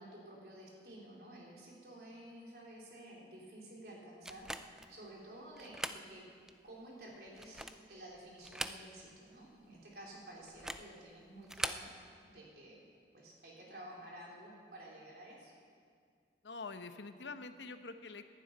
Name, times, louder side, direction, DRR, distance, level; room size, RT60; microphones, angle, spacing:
voice 1, 0.0-6.3 6.6-11.9 12.3-12.9 13.1-15.5, right 1 dB, 60° right, -4 dB, 3.7 m, -52 dB
sound 1, 4.2-4.9 5.6-6.1 6.5-6.6 7.3-7.9 8.4-9.2 9.5-9.6 10.5-10.9 11.4-11.9, right 1 dB, 5° right, 0.4 m, -41 dB
voice 2, 16.4-18.2, left 4 dB, 85° left, 9 dB, 0.9 m, -46 dB
11.5 x 10.5 x 9.4 m, 2.1 s
head